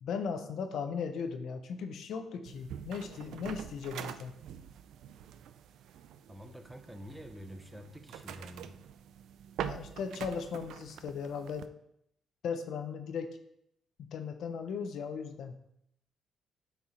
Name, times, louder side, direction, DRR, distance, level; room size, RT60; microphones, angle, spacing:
voice 1, 0.0-4.3 9.6-11.7 12.4-13.4 14.0-15.5, left 6 dB, 75° left, 7 dB, 0.8 m, -37 dB
sound 1, 2.5-11.7, right 9 dB, 80° right, 0.4 m, -45 dB
voice 2, 6.3-8.8, equal, 10° right, 6 dB, 0.8 m, -48 dB
8.6 x 4.7 x 4.2 m, 0.76 s
cardioid pair, 90°, 0 cm